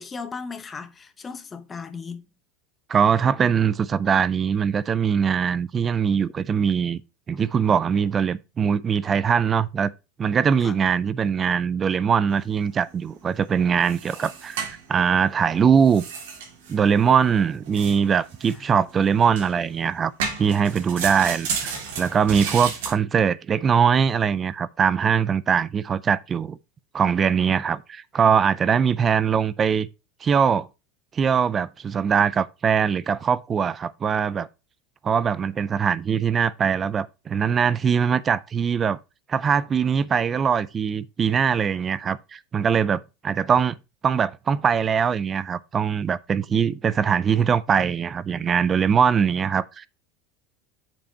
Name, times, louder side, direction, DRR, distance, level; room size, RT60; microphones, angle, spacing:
voice 1, 0.0-2.2 10.6-10.7 18.5-19.0 20.9-21.0 27.5-27.6, left 5 dB, 15° left, 0.8 m, -37 dB
voice 2, 2.9-7.0 7.3-9.9 10.2-16.0 16.7-20.1 20.4-26.6 26.9-29.9 30.2-30.7 31.1-34.5 35.0-39.0 39.3-43.8 44.0-49.9, right 7 dB, 20° right, 0.3 m, -22 dB
sound 1, 12.3-22.9, right 6 dB, 85° right, 3.2 m, -35 dB
7.4 x 5.2 x 4.4 m
supercardioid pair, 165°, 0 cm